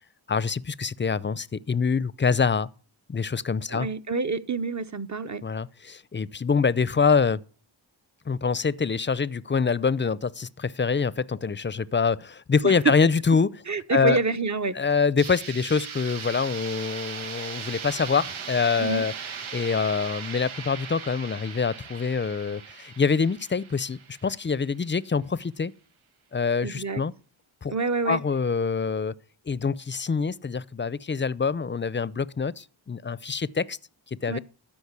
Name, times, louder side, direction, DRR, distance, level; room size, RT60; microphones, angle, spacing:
voice 1, 0.3-2.7 3.1-3.9 5.4-7.4 8.3-13.5 13.9-14.2 14.8-19.1 19.5-25.7 26.3-27.1 27.6-27.7 28.0-29.1 29.5-33.8 34.2-34.4, left 5 dB, 25° left, 0.6 m, -25 dB
voice 2, 3.7-5.4 12.6-12.9 13.7-14.9 18.8-19.0 26.6-27.0 27.7-28.2 34.3-34.4, right 4 dB, 35° right, 1.0 m, -27 dB
sound 1, 15.2-24.9, right 7 dB, 85° right, 1.3 m, -38 dB
13.5 x 5.3 x 8.2 m
cardioid pair, 55°, 47 cm